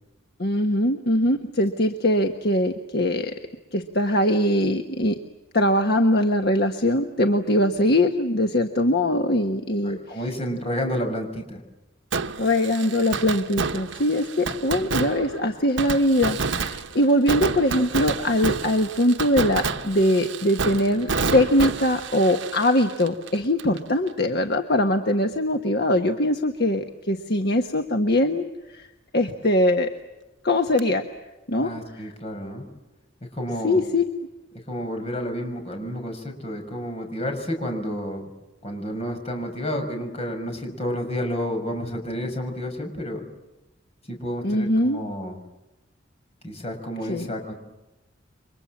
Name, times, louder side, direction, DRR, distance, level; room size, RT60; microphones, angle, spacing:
voice 1, 0.4-3.3 3.7-5.2 5.5-10.0 12.4-28.9 29.1-29.9 30.4-31.1 31.5-31.7 33.6-34.0 44.4-45.0 47.1-47.3, left 1 dB, 55° left, 5 dB, 1.4 m, -22 dB
voice 2, 9.8-11.6 31.6-32.7 33.3-33.8 34.7-38.3 38.6-43.3 44.1-45.4 46.4-47.5, equal, 35° left, 4 dB, 6.2 m, -30 dB
Fireworks, 12.1-23.8 24.1-24.2 30.8-30.9, right 4 dB, 75° right, 1.2 m, -29 dB
29.5 x 24.5 x 7.4 m, 0.98 s
head